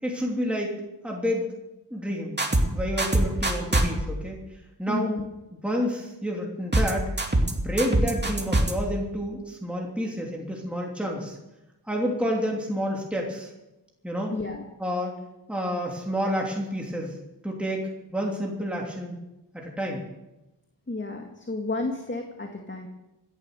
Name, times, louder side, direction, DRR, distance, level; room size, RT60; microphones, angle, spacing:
voice 1, 0.0-0.7 1.0-1.5 1.9-2.4 2.7-4.4 4.8-5.1 5.6-7.1 7.5-11.4 11.9-13.5 14.0-14.3 14.8-15.1 15.5-17.2 17.4-19.2 19.5-20.0, equal, 5° right, -2 dB, 3.1 m, -29 dB
sound 1, 2.4-2.7 3.0-3.9 6.7-6.9 7.2-7.5 7.8-8.7, right 1 dB, 25° right, 2.6 m, -22 dB
voice 2, 4.9-5.3 14.3-14.7 20.9-22.9, left 2 dB, 30° left, 3 dB, 2.0 m, -31 dB
16.0 x 11.5 x 6.7 m, 0.98 s
wide cardioid pair, 65°, 41 cm